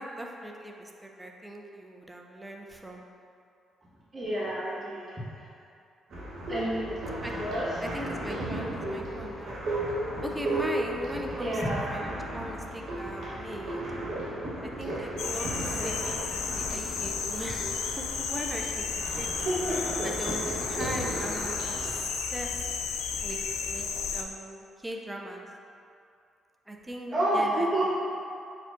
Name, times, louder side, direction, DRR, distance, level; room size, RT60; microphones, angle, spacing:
voice 1, 0.0-3.0 7.2-7.3 7.8-9.6 10.2-11.6 11.9-13.8 14.6-18.9 19.1-19.5 20.0-22.7 23.2-23.4 23.7-23.9 24.1-25.5 26.7-27.7, right 1 dB, 10° right, 1 dB, 0.5 m, -39 dB
voice 2, 4.1-5.5 6.5-7.1 7.4-7.8 11.4-11.9 15.6-15.9 19.4-20.0 27.1-27.9, right 1 dB, 25° right, -8 dB, 1.4 m, -30 dB
sound 1, 6.1-22.0, right 1 dB, 60° right, 1.1 m, -35 dB
sound 2, 15.2-24.2, left 6 dB, 80° left, 0.3 m, -33 dB
4.7 x 4.3 x 2.5 m, 2.6 s
cardioid pair, 90°, 0 cm